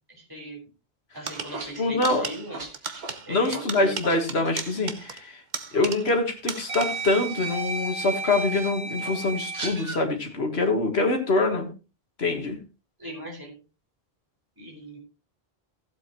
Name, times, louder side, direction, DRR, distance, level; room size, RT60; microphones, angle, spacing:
voice 1, 0.1-0.6 1.1-2.6 3.3-3.6 13.0-13.6 14.6-15.0, right 1 dB, 20° right, -3 dB, 4.7 m, -39 dB
sound 1, 1.2-4.2 4.4-4.6 5.8-5.9 6.7-10.0, right 3 dB, 75° right, 1.9 m, -34 dB
sound 2, 1.3-6.2 6.5-7.2, right 5 dB, 50° right, 1.0 m, -36 dB
voice 2, 1.8-2.2 3.3-5.4 5.7-11.7 12.2-12.6, left 2 dB, 85° left, 4 dB, 1.9 m, -25 dB
15.0 x 7.9 x 3.0 m, 0.30 s
omnidirectional pair, 1.0 m